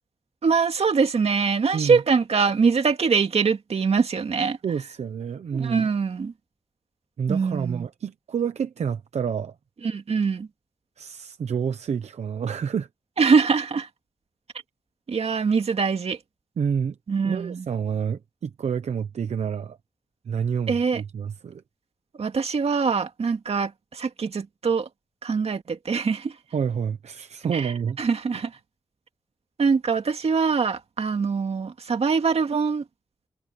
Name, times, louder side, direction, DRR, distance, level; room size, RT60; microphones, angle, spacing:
voice 1, 0.4-4.6 5.5-6.3 7.3-7.9 9.8-10.5 13.2-13.9 15.1-16.2 17.1-17.7 20.7-21.0 22.2-24.9 25.2-26.3 27.5-28.5 29.6-32.8, right 5 dB, 65° right, 2.2 m, -23 dB
voice 2, 4.6-5.9 7.2-9.5 11.0-12.9 16.6-17.0 17.2-19.8 20.3-21.6 26.5-28.0, right 7 dB, 85° right, 0.9 m, -28 dB
wide cardioid pair, 80°, 11 cm